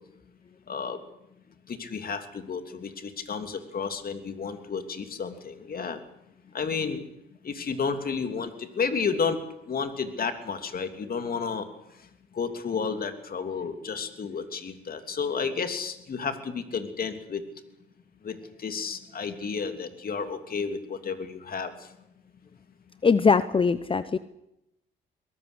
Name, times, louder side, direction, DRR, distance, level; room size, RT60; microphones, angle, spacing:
voice 1, 0.7-1.0 1.7-6.0 6.5-7.0 7.4-9.4 9.6-11.7 12.3-17.4 18.2-21.9, left 5 dB, 50° left, 8 dB, 3.0 m, -31 dB
voice 2, 23.0-24.2, left 5 dB, 25° left, 14 dB, 0.8 m, -21 dB
22.5 x 18.5 x 8.1 m, 0.84 s
cardioid pair, 90°, 20 cm